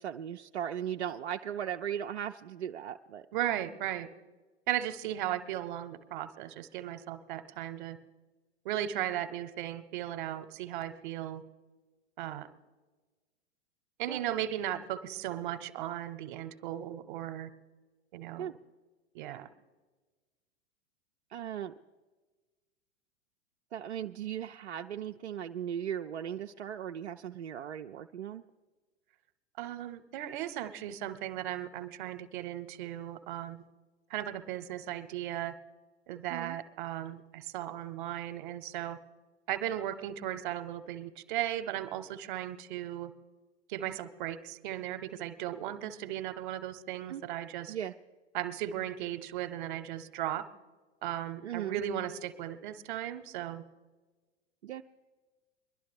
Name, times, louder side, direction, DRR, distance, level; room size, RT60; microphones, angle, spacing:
voice 1, 0.0-3.3 14.1-14.2 18.4-18.5 21.3-21.7 23.7-28.4 36.3-36.6 47.1-47.2 47.7-47.9 51.4-51.8 54.6-54.8, right 9 dB, 70° right, 4 dB, 0.5 m, -37 dB
voice 2, 3.3-4.1 4.7-8.0 8.6-11.4 12.2-12.5 14.0-17.5 18.1-18.5 19.1-19.5 29.6-33.6 34.1-35.5 36.1-39.0 39.5-43.1 43.7-47.7 48.3-50.4 51.0-53.6, right 12 dB, 45° right, 12 dB, 0.9 m, -36 dB
22.0 x 12.0 x 3.4 m, 1.3 s
figure-of-eight pair, 95°, 35 cm